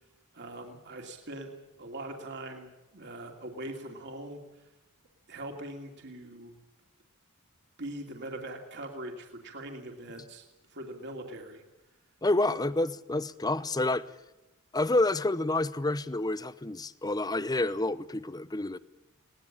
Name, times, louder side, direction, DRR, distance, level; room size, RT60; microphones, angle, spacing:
voice 1, 0.3-1.5 1.8-4.4 5.3-6.5 7.8-10.4 10.7-11.6, right 1 dB, 50° right, 2 dB, 2.8 m, -41 dB
voice 2, 12.2-14.1 14.7-18.8, left 2 dB, 15° left, 16 dB, 0.7 m, -28 dB
21.0 x 18.5 x 8.8 m, 0.99 s
head